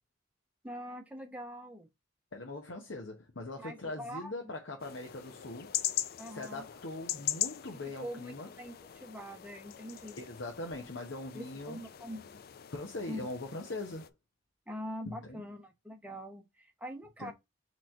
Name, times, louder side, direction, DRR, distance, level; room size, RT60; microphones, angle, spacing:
voice 1, 0.6-1.9 3.6-4.3 6.2-6.7 7.7-10.2 11.3-12.3 13.1-13.3 14.7-17.3, equal, 10° right, 0.8 m, -44 dB
voice 2, 2.3-5.8 6.3-8.5 10.2-11.8 12.7-14.1 15.1-15.4 17.2-17.3, left 2 dB, 70° left, 0.9 m, -41 dB
sound 1, 4.8-14.1, left 12 dB, 50° left, 0.4 m, -40 dB
3.9 x 3.1 x 4.3 m
head